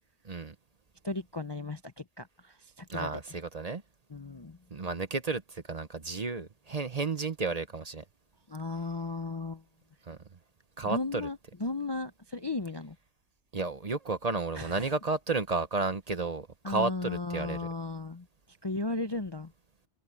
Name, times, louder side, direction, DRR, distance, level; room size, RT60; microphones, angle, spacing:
voice 1, 0.2-0.5 2.9-3.8 4.7-8.0 10.1-10.2 10.8-11.3 13.5-17.7, right 3 dB, 35° right, 0.9 m, -32 dB
voice 2, 1.0-3.2 4.1-4.6 8.5-9.6 10.8-12.9 14.6-14.9 16.6-18.3 18.6-19.5, left 3 dB, 30° left, 0.5 m, -35 dB
omnidirectional pair, 1.3 m